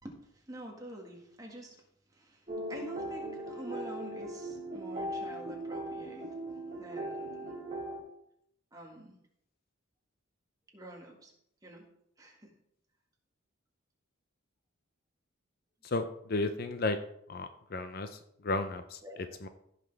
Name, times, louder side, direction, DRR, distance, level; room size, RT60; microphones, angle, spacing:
voice 1, 0.0-1.8 2.1-6.3 6.8-7.5 8.7-9.2 10.7-11.3 11.6-11.8 12.2-12.5 19.0-19.4, right 1 dB, 20° right, 0 dB, 1.7 m, -47 dB
sound 1, 2.5-8.0, right 1 dB, 35° right, 2.1 m, -39 dB
voice 2, 15.8-17.0 17.3-19.0 19.4-19.5, left 2 dB, 50° left, 9 dB, 0.6 m, -33 dB
15.5 x 6.0 x 3.4 m, 0.73 s
head